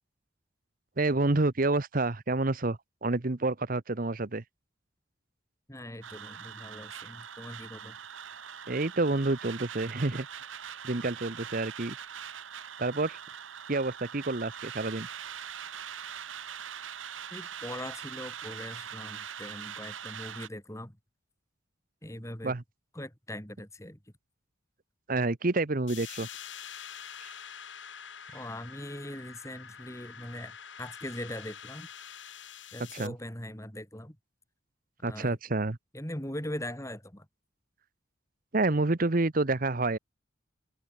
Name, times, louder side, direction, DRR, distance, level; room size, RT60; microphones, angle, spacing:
voice 1, 1.0-4.4 8.7-10.3 10.8-12.0 12.8-13.2 13.7-15.1 22.4-22.6 25.1-26.3 27.2-27.3 32.9-33.1 35.0-35.8 38.5-40.0, right 2 dB, 45° right, 1.0 m, -28 dB
voice 2, 5.7-8.0 17.3-21.0 22.0-22.6 22.9-24.0 28.3-31.9 32.7-34.2 35.0-35.4 35.9-37.3, left 1 dB, 15° left, 5.2 m, -41 dB
sound 1, 6.0-20.5, right 8 dB, 85° right, 1.4 m, -42 dB
sound 2, 25.9-33.1, left 8 dB, 70° left, 4.2 m, -46 dB
head